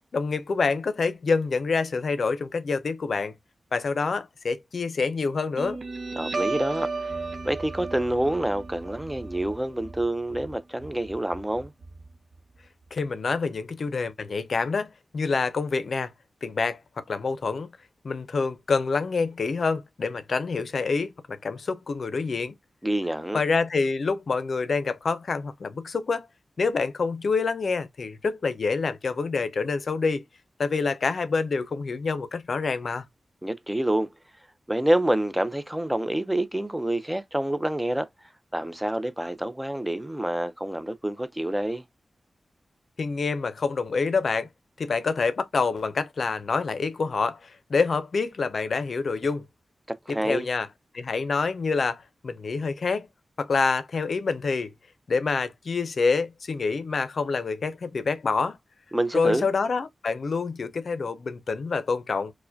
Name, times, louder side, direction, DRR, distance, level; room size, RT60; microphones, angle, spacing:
voice 1, 0.1-3.3 3.7-5.8 12.9-16.1 16.4-17.7 18.0-22.5 23.3-26.3 26.6-30.2 30.6-33.1 43.0-44.5 44.8-49.5 50.1-50.7 50.9-53.1 53.4-54.7 55.1-58.6 59.1-62.3, left 4 dB, 70° left, 0.5 m, -27 dB
Guitar, 5.6-12.6, right 3 dB, 65° right, 0.7 m, -35 dB
voice 2, 6.2-6.9 7.4-11.7 22.8-23.4 33.4-34.1 34.7-38.1 38.5-41.8 49.9-50.5 58.9-59.5, right 1 dB, 10° right, 0.5 m, -27 dB
4.6 x 2.1 x 2.5 m
wide cardioid pair, 100°, 0 cm